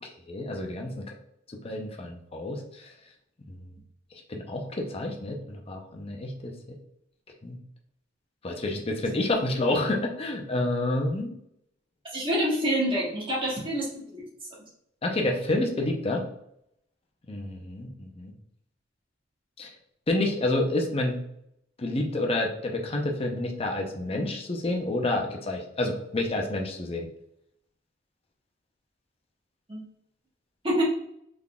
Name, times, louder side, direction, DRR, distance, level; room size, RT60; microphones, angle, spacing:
voice 1, 0.0-1.1 1.6-2.9 3.5-3.6 4.3-6.5 7.4-7.6 8.4-11.4 15.0-16.2 17.3-18.3 19.6-19.7 20.1-21.2 21.8-27.1, left 2 dB, 30° left, 1 dB, 0.6 m, -29 dB
voice 2, 12.1-14.2 29.7-29.8 30.6-30.8, equal, 25° right, -6 dB, 1.4 m, -27 dB
3.7 x 3.6 x 2.3 m, 0.75 s
head